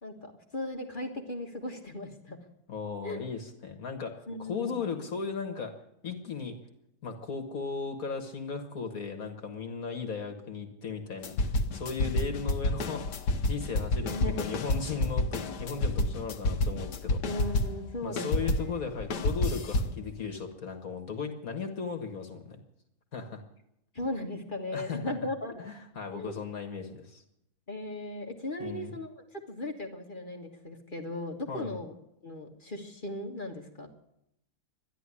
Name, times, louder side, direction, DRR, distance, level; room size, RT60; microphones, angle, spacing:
voice 1, 0.0-2.4 3.0-3.2 4.3-4.8 14.1-14.5 17.2-18.8 23.9-25.8 26.1-26.4 27.7-31.9 32.2-33.9, left 1 dB, 30° left, 1 dB, 1.7 m, -37 dB
voice 2, 2.7-5.7 6.0-6.6 7.0-17.2 18.0-22.6 23.1-23.4 24.7-25.1 25.6-27.2 28.6-28.9 31.5-31.8, left 5 dB, 60° left, 4 dB, 1.9 m, -36 dB
sound 1, 11.2-17.9 18.2-20.0, left 2 dB, 80° left, 1.6 m, -29 dB
12.5 x 11.5 x 9.8 m, 0.81 s
omnidirectional pair, 1.8 m